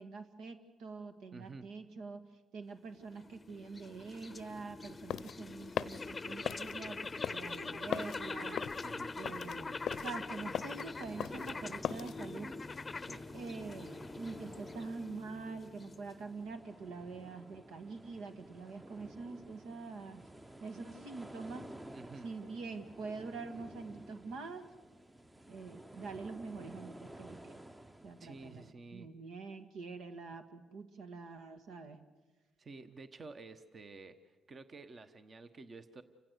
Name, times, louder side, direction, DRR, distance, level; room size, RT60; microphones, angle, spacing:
voice 1, 0.0-2.2 2.5-8.6 9.2-12.5 13.3-20.2 20.6-21.7 22.2-24.7 25.5-27.6 28.0-28.6 28.9-32.0, right 4 dB, 85° right, 8 dB, 1.8 m, -45 dB
voice 2, 1.3-1.7 8.8-9.1 13.0-13.2 21.9-22.3 28.2-29.1 30.3-30.4 32.6-36.0, right 3 dB, 40° right, 10 dB, 1.2 m, -51 dB
sound 1, 2.9-16.4, left 3 dB, 25° left, 0.7 m, -44 dB
sound 2, 4.8-12.2, left 9 dB, 70° left, 0.6 m, -40 dB
sound 3, 10.3-28.7, right 1 dB, 10° right, 0.8 m, -53 dB
28.5 x 16.0 x 8.1 m, 1.3 s
cardioid pair, 90°, 0 cm